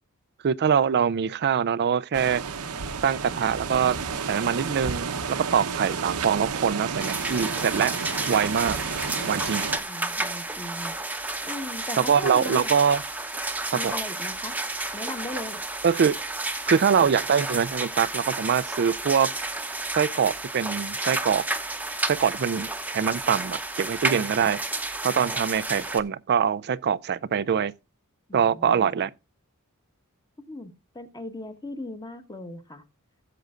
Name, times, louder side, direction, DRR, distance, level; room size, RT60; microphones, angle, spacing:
voice 1, 0.4-2.4 3.0-4.0 4.3-7.9 8.3-8.8 9.3-9.7 12.1-13.0 13.8-13.9 15.8-16.2 16.7-19.3 19.9-21.4 22.1-24.6 25.0-27.7 28.3-29.1, right 7 dB, 50° right, 0.4 m, -24 dB
sound 1, 2.1-9.8, right 5 dB, 80° right, 0.9 m, -31 dB
sound 2, 7.0-26.0, right 2 dB, 5° right, 0.9 m, -31 dB
voice 2, 9.1-10.9 11.4-12.7 13.7-14.5 14.9-15.6 28.3-29.0 30.5-32.8, left 1 dB, 20° left, 1.4 m, -38 dB
16.0 x 7.7 x 2.4 m
head